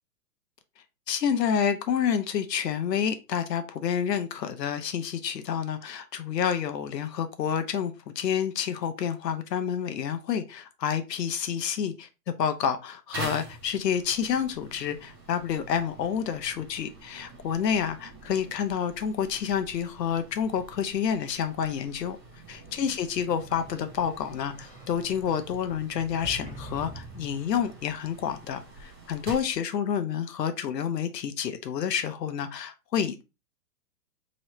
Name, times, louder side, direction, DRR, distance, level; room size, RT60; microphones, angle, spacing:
voice 1, 1.1-12.1 12.4-22.2 22.5-33.2, left 8 dB, 85° left, 0.7 m, -29 dB
sound 1, 13.1-29.6, right 2 dB, 15° right, 0.4 m, -46 dB
Sliding door, 23.1-27.8, right 1 dB, 5° left, 1.5 m, -45 dB
3.1 x 2.9 x 4.2 m
hypercardioid pair, 150°, 48 cm